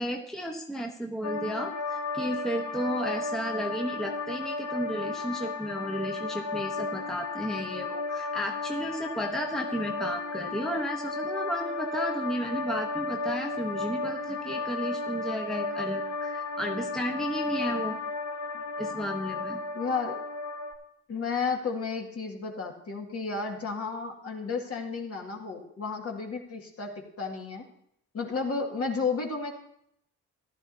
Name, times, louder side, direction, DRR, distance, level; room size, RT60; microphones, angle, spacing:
voice 1, 0.0-18.0 18.8-19.6, equal, ahead, 1 dB, 1.1 m, -33 dB
sound 1, 1.2-20.7, left 3 dB, 70° left, 1.4 m, -34 dB
voice 2, 19.7-20.2 21.1-26.9 27.2-27.7 28.1-29.5, left 4 dB, 50° left, 1 dB, 2.1 m, -32 dB
14.5 x 11.5 x 2.7 m, 0.74 s
cardioid pair, 90°, 30 cm